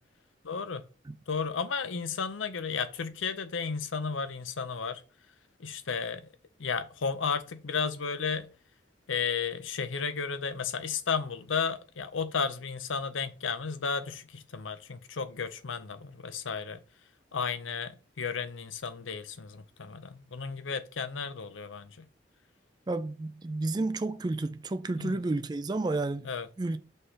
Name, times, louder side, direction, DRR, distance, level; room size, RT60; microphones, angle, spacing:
voice 1, 0.4-0.8 1.3-5.0 5.6-6.3 6.6-8.5 9.1-16.8 17.3-22.1 25.0-25.1 26.2-26.5, left 5 dB, 90° left, 0.7 m, -33 dB
voice 2, 22.9-26.3 26.6-26.8, right 2 dB, 20° right, 0.3 m, -31 dB
5.3 x 3.3 x 5.6 m
head